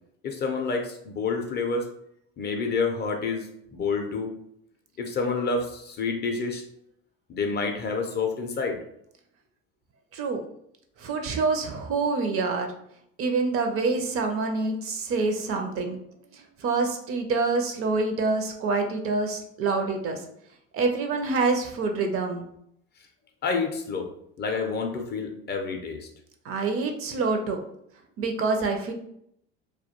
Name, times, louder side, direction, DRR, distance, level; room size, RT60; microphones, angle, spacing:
voice 1, 0.2-1.9 2.4-4.3 5.0-6.6 7.3-8.8 23.4-24.1 24.4-26.1, left 4 dB, 30° left, 3 dB, 0.4 m, -28 dB
voice 2, 11.0-12.7 13.2-16.0 16.3-20.2 20.7-22.5 26.4-27.6 28.2-28.9, right 3 dB, 45° right, 4 dB, 0.5 m, -26 dB
2.2 x 2.2 x 2.8 m, 0.72 s
supercardioid pair, 95°, 32 cm